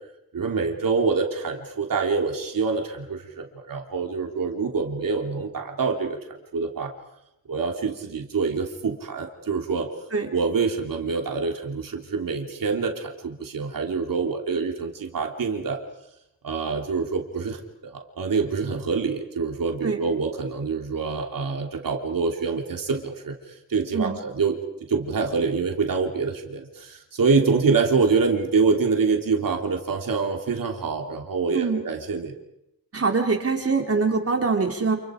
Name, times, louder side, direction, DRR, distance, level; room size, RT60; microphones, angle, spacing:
voice 1, 0.3-6.2 6.5-6.9 7.5-9.9 10.3-15.8 16.4-32.3, right 4 dB, 70° right, 3 dB, 3.0 m, -26 dB
voice 2, 32.9-35.0, right 4 dB, 40° right, 3 dB, 3.2 m, -23 dB
30.0 x 28.0 x 5.1 m, 0.84 s
wide cardioid pair, 160°, 34 cm